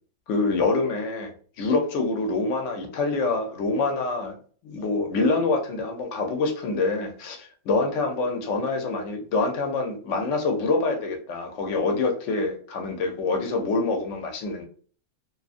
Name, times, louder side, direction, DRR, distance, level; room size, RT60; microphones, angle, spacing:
voice 1, 0.3-1.3 1.6-4.3 4.6-14.6, left 3 dB, 60° left, 4 dB, 0.9 m, -26 dB
2.6 x 2.5 x 2.4 m, 0.43 s
omnidirectional pair, 1.6 m